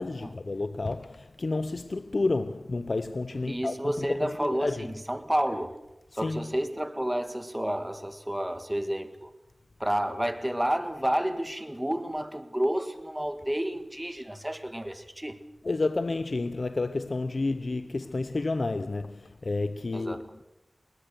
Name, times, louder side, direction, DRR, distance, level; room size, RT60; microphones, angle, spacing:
voice 1, 0.0-4.9 6.2-6.5 15.6-20.3, left 3 dB, 60° left, 0.7 m, -30 dB
voice 2, 3.5-5.7 6.1-9.3 9.8-15.4 19.9-20.4, right 1 dB, 10° right, 1.8 m, -30 dB
21.5 x 19.0 x 6.7 m
wide cardioid pair, 60°, 0 cm